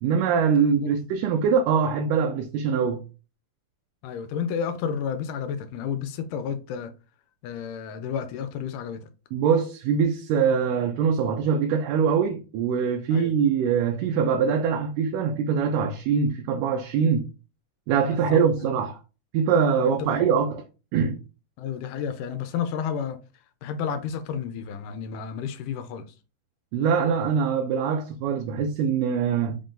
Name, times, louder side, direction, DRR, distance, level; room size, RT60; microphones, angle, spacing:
voice 1, 0.0-3.0 9.3-17.3 17.9-19.0 19.3-20.6 20.9-21.2 26.7-29.6, right 6 dB, 85° right, 2.1 m, -23 dB
voice 2, 4.0-6.9 7.4-9.1 13.1-13.3 18.0-18.7 19.8-20.2 21.6-23.2 23.6-26.1, left 7 dB, 85° left, 2.1 m, -31 dB
5.3 x 2.6 x 3.7 m
omnidirectional pair, 3.7 m